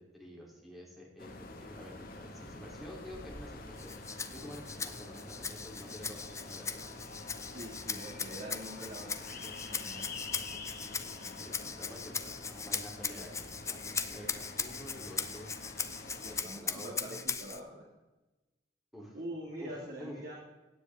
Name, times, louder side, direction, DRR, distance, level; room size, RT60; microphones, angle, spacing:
voice 1, 0.0-6.9 10.8-15.5 16.2-17.2 18.9-19.2 19.6-19.7 20.0-20.4, equal, ahead, -3 dB, 3.1 m, -49 dB
sound 1, 1.2-16.4, left 3 dB, 55° left, 1.7 m, -47 dB
Rattle (instrument), 3.8-17.6, left 5 dB, 15° left, 0.6 m, -39 dB
voice 2, 7.5-10.0 16.2-17.8 19.1-20.4, right 1 dB, 50° right, -3 dB, 2.2 m, -44 dB
16.5 x 9.7 x 3.6 m, 1.1 s
head